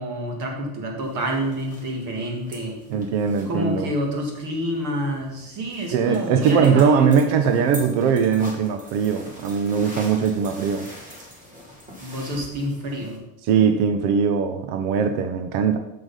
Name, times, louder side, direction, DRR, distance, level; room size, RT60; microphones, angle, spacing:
voice 1, 0.0-2.8 3.5-7.7 11.9-13.2, equal, 45° right, 1 dB, 2.1 m, -28 dB
sound 1, 1.0-13.2, right 1 dB, 20° right, 1.3 m, -44 dB
voice 2, 2.9-3.9 5.9-10.9 13.5-15.8, right 6 dB, 80° right, 7 dB, 0.8 m, -20 dB
7.0 x 6.4 x 5.4 m, 0.91 s
cardioid pair, 180°, 44 cm